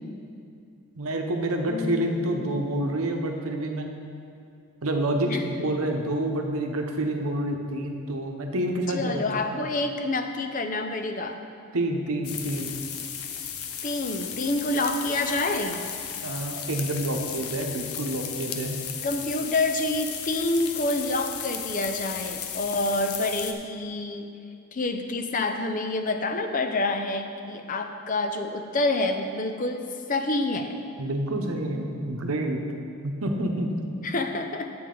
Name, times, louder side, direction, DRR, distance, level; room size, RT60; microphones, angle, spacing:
voice 1, 0.9-3.9 4.8-9.2 9.5-9.6 11.7-12.7 16.2-18.8 31.0-32.6 33.0-33.7, right 1 dB, 75° right, 3 dB, 0.9 m, -28 dB
voice 2, 1.7-2.7 5.3-5.4 8.9-11.4 13.8-15.8 19.0-24.3 24.7-30.8 34.0-34.7, left 2 dB, 35° left, 6 dB, 0.5 m, -28 dB
sound 1, 12.2-23.5, left 8 dB, 80° left, 0.7 m, -35 dB
9.5 x 7.7 x 3.8 m, 2.4 s
head